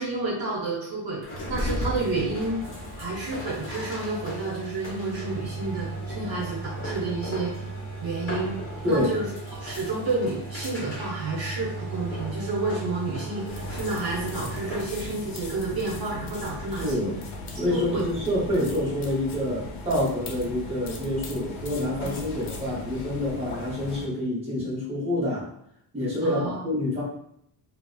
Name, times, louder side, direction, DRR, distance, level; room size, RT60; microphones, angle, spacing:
voice 1, 0.0-2.6 3.0-7.7 8.0-8.5 8.8-17.1 17.7-18.0 26.2-26.6, right 3 dB, 50° right, -4 dB, 0.8 m, -30 dB
sound 1, 1.2-14.9, right 1 dB, 30° left, 0.8 m, -35 dB
sound 2, 13.5-24.1, left 2 dB, 90° left, 0.6 m, -37 dB
voice 2, 16.7-17.1 17.6-25.5 25.9-27.0, left 1 dB, 15° right, -7 dB, 0.8 m, -27 dB
2.7 x 2.0 x 2.3 m, 0.70 s
cardioid pair, 140°, 47 cm